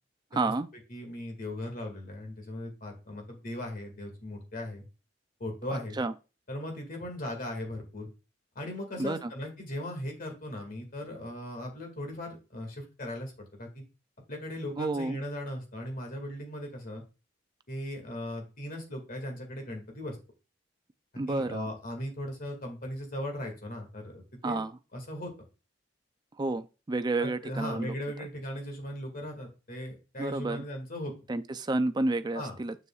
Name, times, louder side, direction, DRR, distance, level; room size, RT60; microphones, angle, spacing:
voice 1, 0.3-0.7 6.0-6.1 9.0-9.3 14.8-15.2 21.2-21.7 24.4-24.7 26.4-28.3 30.2-30.6 31.3-32.8, right 2 dB, 25° right, 0.4 m, -30 dB
voice 2, 0.9-4.8 5.4-6.0 6.5-8.1 8.6-13.8 14.3-17.0 17.7-20.2 21.3-24.6 24.9-25.3 27.2-31.1 32.3-32.6, left 1 dB, 50° left, 2.1 m, -38 dB
7.0 x 6.8 x 2.4 m
head